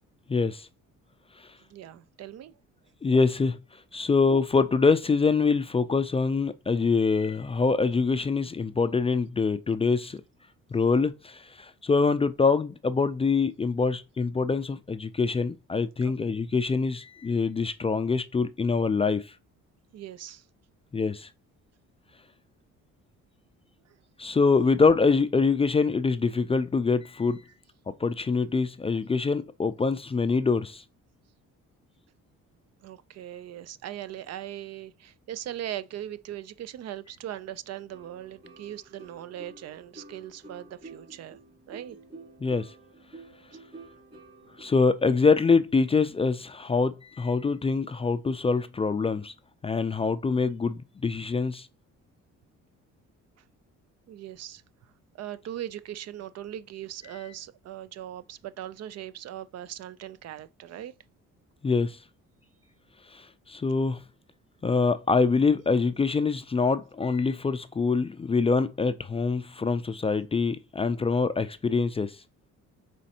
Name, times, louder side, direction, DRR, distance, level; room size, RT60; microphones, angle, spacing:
voice 1, 0.3-0.7 3.0-3.6 3.9-10.2 10.7-19.2 20.9-21.3 24.2-27.4 28.0-30.8 42.4-42.7 44.6-49.3 49.6-51.7 61.6-62.0 63.1-64.0 64.6-72.2, left 4 dB, 20° left, 0.3 m, -25 dB
voice 2, 1.7-2.5 16.0-16.1 19.9-20.4 32.8-41.4 41.7-42.0 54.1-54.6 55.1-60.9, right 11 dB, 60° right, 0.4 m, -39 dB
sound 1, 37.9-44.7, right 3 dB, 30° right, 2.6 m, -49 dB
5.2 x 3.1 x 2.8 m
cardioid pair, 90°, 30 cm